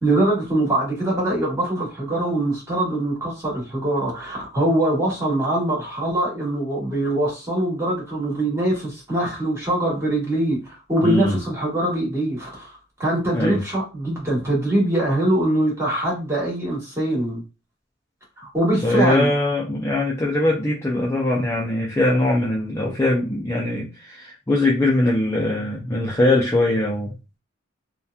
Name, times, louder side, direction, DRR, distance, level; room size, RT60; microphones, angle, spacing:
voice 1, 0.0-17.4 18.4-19.3, right 1 dB, 15° right, -4 dB, 1.2 m, -23 dB
voice 2, 11.0-11.4 13.3-13.6 18.8-27.1, left 1 dB, 15° left, -3 dB, 0.4 m, -21 dB
2.8 x 2.2 x 2.3 m, 0.29 s
head